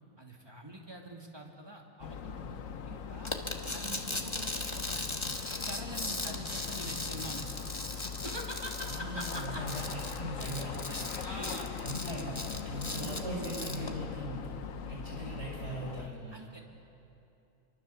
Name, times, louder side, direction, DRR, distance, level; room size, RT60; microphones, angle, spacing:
voice 1, 0.2-3.3 3.7-5.2 5.6-9.6 10.4-10.5 10.9-11.7 16.3-16.6, right 1 dB, 15° right, 0 dB, 2.6 m, -45 dB
sound 1, 2.0-16.1, left 7 dB, 65° left, 1.2 m, -41 dB
sound 2, 3.3-13.9, left 2 dB, 20° left, 1.5 m, -38 dB
voice 2, 8.8-10.8 11.1-14.5 14.9-16.4, right 1 dB, 45° right, -4 dB, 6.0 m, -40 dB
28.5 x 24.0 x 7.1 m, 2.8 s
omnidirectional pair, 1.6 m